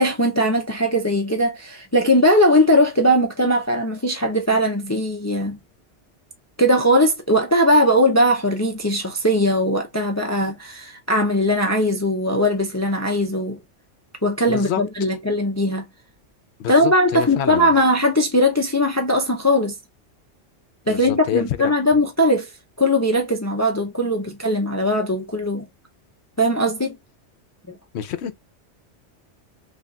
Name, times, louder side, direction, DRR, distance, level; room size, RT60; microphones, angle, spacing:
voice 1, 0.0-5.6 6.6-13.6 14.2-15.8 16.7-19.8 20.9-22.5 22.8-25.7 26.4-27.0 27.7-27.8, equal, 25° left, 0.4 m, -19 dB
voice 2, 14.5-14.8 16.6-17.7 20.9-21.7 27.9-28.4, left 10 dB, 70° left, 0.8 m, -27 dB
3.4 x 2.4 x 3.9 m
omnidirectional pair, 1.2 m